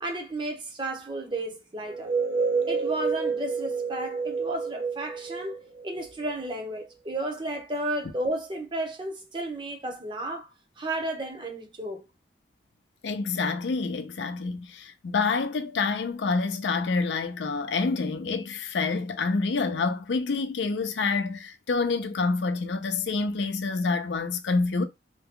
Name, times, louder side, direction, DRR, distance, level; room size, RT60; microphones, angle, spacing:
voice 1, 0.0-2.1 2.7-5.6 5.8-10.5 10.8-12.0, right 1 dB, 25° right, 0.7 m, -33 dB
sound 1, 1.9-6.5, right 5 dB, 85° right, 0.9 m, -29 dB
voice 2, 13.0-24.8, left 4 dB, 85° left, 0.5 m, -27 dB
2.7 x 2.2 x 3.6 m
head